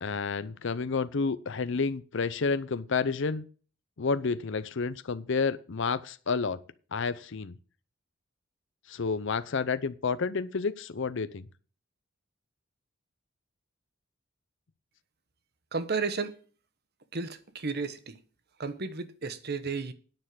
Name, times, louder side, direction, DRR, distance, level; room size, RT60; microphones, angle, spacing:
voice 1, 0.0-3.5 4.0-6.6 6.9-7.6 8.9-11.5, left 4 dB, 65° left, 0.7 m, -30 dB
voice 2, 15.7-16.4 17.1-18.2 18.6-19.9, right 4 dB, 55° right, 1.1 m, -33 dB
9.8 x 6.5 x 7.7 m
head